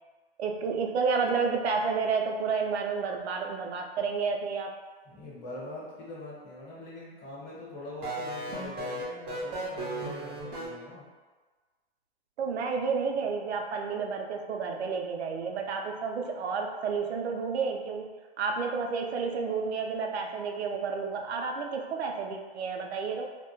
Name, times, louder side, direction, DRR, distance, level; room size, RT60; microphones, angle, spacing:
voice 1, 0.4-4.7 12.4-18.1 18.4-23.3, right 5 dB, 90° right, 2 dB, 0.5 m, -30 dB
voice 2, 5.1-11.1, left 2 dB, 25° left, -7 dB, 0.8 m, -43 dB
sound 1, 8.0-10.7, right 2 dB, 20° right, 0.5 m, -35 dB
2.1 x 2.1 x 2.9 m, 1.4 s
hypercardioid pair, 145°, 32 cm